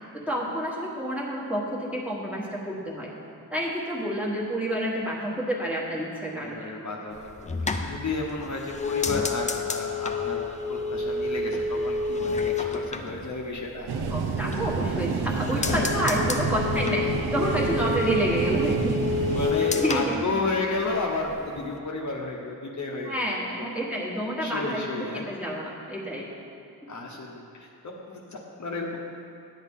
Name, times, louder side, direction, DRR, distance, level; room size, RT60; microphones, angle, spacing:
voice 1, 0.1-3.1 3.5-6.7 14.1-17.0 17.3-19.0 19.8-20.2 21.6-21.7 23.0-26.3, equal, 5° right, -5 dB, 1.3 m, -29 dB
voice 2, 6.3-13.9 15.6-15.9 19.3-23.7 24.4-25.2 26.9-29.0, left 3 dB, 50° left, -1 dB, 0.9 m, -32 dB
sound 1, 7.2-13.9 14.3-15.0 15.3-21.0 21.3-21.8, left 4 dB, 20° left, 0.4 m, -29 dB
sound 2, 13.9-19.5, right 5 dB, 80° right, 0.7 m, -29 dB
10.0 x 8.3 x 3.6 m, 2.6 s
wide cardioid pair, 135°, 38 cm